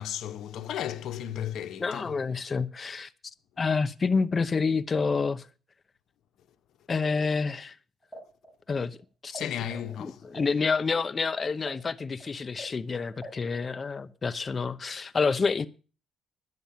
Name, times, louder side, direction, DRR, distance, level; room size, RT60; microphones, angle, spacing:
voice 1, 0.0-2.2 9.3-10.2, left 10 dB, 75° left, 1.0 m, -34 dB
voice 2, 1.8-3.1 3.6-5.5 6.9-7.8 8.7-9.0 9.2-9.3 10.0-15.7, left 4 dB, 35° left, 0.7 m, -28 dB
sound 1, 8.0-9.4 9.7-14.1, equal, 10° left, 7.4 m, -46 dB
10.5 x 8.0 x 7.3 m
cardioid pair, 90°, 0 cm